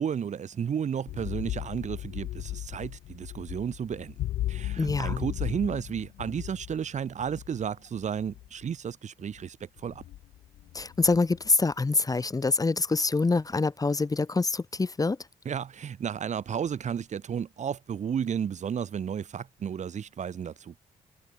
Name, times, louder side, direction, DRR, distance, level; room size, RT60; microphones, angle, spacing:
voice 1, 0.0-4.1 4.5-10.0 15.4-20.8, right 8 dB, 55° right, 1.7 m, -33 dB
sound 1, 1.1-8.6 9.4-9.5 9.8-11.5, left 14 dB, 85° left, 1.8 m, -36 dB
voice 2, 4.8-5.2 10.7-15.2, left 3 dB, 25° left, 1.4 m, -25 dB
cardioid pair, 70°, 14 cm